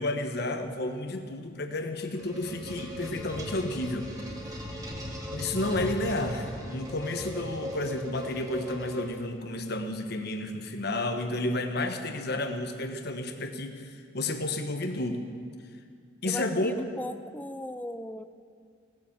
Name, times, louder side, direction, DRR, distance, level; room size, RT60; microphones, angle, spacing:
voice 1, 0.0-4.1 5.3-15.3 16.2-16.7, left 2 dB, 60° left, 6 dB, 1.2 m, -31 dB
sound 1, 1.8-9.5, equal, 20° right, 2.1 m, -38 dB
voice 2, 16.2-18.2, left 1 dB, 10° left, 11 dB, 0.5 m, -38 dB
17.5 x 9.6 x 7.3 m, 2.1 s
head